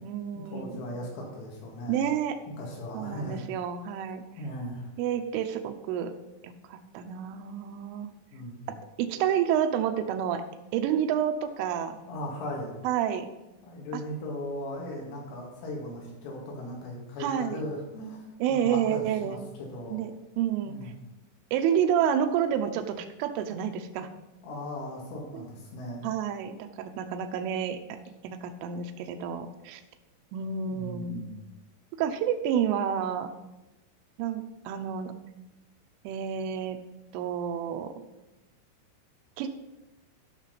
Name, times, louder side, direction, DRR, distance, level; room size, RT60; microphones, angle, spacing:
voice 1, 0.0-0.8 1.9-2.4 2.9-4.2 5.0-6.1 6.4-8.1 9.0-10.4 10.7-12.0 12.8-13.3 17.2-17.6 18.4-19.4 19.9-20.1 20.4-20.9 21.5-24.1 25.3-25.4 26.0-28.0 28.2-29.8 30.3-31.2 32.0-33.3 34.2-35.1 36.0-36.8 37.1-37.9 39.4-39.5, right 9 dB, 90° right, 7 dB, 3.3 m, -29 dB
voice 2, 0.5-2.0 2.6-3.5 4.4-4.9 8.3-8.7 12.1-12.7 13.7-20.0 20.7-21.0 24.4-26.1 30.7-31.4, left 1 dB, 90° left, -1 dB, 4.6 m, -38 dB
13.0 x 6.3 x 4.1 m, 0.99 s
omnidirectional pair, 5.5 m